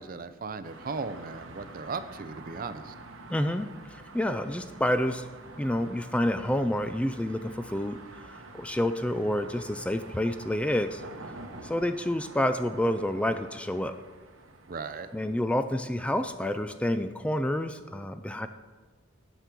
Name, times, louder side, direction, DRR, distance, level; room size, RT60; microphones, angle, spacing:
voice 1, 0.0-2.9 14.7-15.1, right 4 dB, 45° right, 12 dB, 0.6 m, -37 dB
sound 1, 0.6-16.8, right 2 dB, 85° right, 1.1 m, -48 dB
voice 2, 3.3-5.3 5.6-8.0 8.3-11.0 11.6-13.9 15.1-18.5, left 1 dB, 5° left, 10 dB, 0.4 m, -29 dB
8.3 x 8.1 x 6.0 m, 1.3 s
head